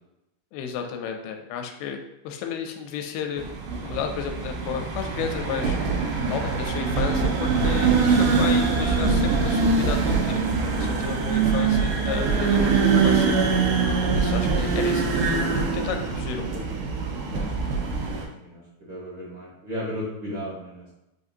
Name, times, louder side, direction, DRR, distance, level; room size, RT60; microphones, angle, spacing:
voice 1, 0.5-2.0 2.2-3.4 3.8-5.8 6.3-10.4 10.8-13.6 14.1-15.5 15.7-16.6, left 7 dB, 85° left, 4 dB, 2.4 m, -32 dB
sound 1, 3.4-18.2, right 4 dB, 85° right, 1.8 m, -23 dB
voice 2, 10.7-11.3 17.2-20.9, equal, 70° right, -8 dB, 1.2 m, -36 dB
7.4 x 2.5 x 2.7 m, 0.90 s
omnidirectional pair, 4.5 m